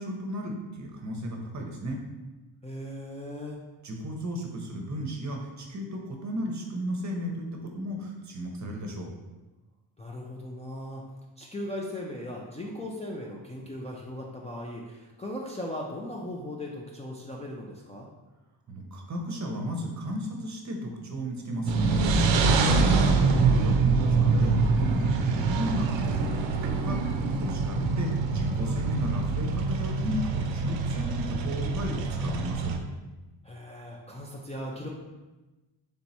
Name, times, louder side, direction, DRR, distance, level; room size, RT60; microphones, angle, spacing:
voice 1, 0.0-2.0 3.8-9.1 18.7-22.0 22.8-25.1 25.4-32.7, equal, 35° right, 1 dB, 0.8 m, -34 dB
voice 2, 2.6-3.6 10.0-11.0 11.4-18.1 22.6-23.1 33.4-34.9, left 1 dB, 15° left, -4 dB, 0.5 m, -38 dB
sound 1, 21.7-32.8, right 4 dB, 70° right, 0.6 m, -25 dB
3.4 x 2.9 x 4.1 m, 1.1 s
cardioid pair, 95°, 47 cm